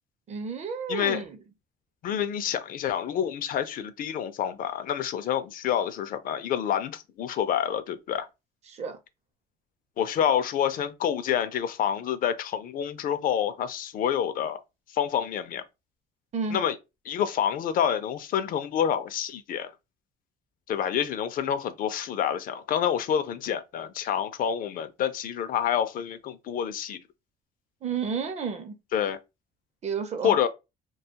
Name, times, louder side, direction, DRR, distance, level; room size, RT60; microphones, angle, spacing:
voice 1, 0.3-1.4 8.7-9.0 16.3-16.6 27.8-28.7 29.8-30.3, right 5 dB, 40° right, 0.6 m, -31 dB
voice 2, 0.9-1.2 2.0-8.3 10.0-14.6 14.9-15.6 16.5-16.8 17.1-19.7 20.7-27.0 28.9-29.2 30.2-30.5, left 9 dB, 55° left, 0.4 m, -28 dB
2.4 x 2.3 x 2.8 m
cardioid pair, 110°, 17 cm